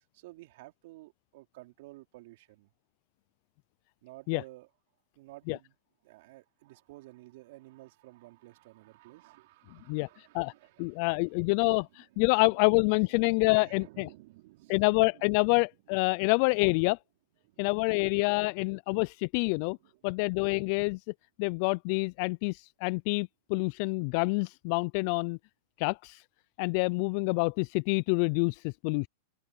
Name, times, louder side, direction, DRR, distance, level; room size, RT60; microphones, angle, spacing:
voice 1, 0.0-2.7 4.0-4.7 5.2-5.8 6.0-15.3 17.4-17.7 19.8-20.0, right 19 dB, 60° right, 4.0 m, -53 dB
voice 2, 9.9-10.5 10.8-14.1 14.7-17.0 17.6-19.8 20.0-21.0 21.4-25.4 25.8-26.2 26.6-29.1, left 30 dB, 50° left, 0.4 m, -27 dB
hypercardioid pair, 110°, 0 cm